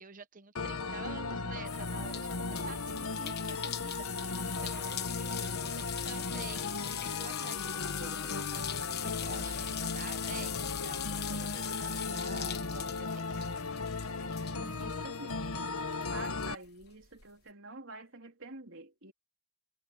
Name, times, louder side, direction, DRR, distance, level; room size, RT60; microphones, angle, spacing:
voice 1, 0.0-13.4, right 4 dB, 40° right, 1.0 m, -49 dB
sound 1, 0.6-16.6, left 3 dB, 85° left, 1.4 m, -36 dB
sound 2, 1.6-15.7 16.0-17.2, left 12 dB, 50° left, 1.3 m, -41 dB
voice 2, 14.6-15.4 16.1-19.1, right 2 dB, 65° right, 3.8 m, -48 dB
head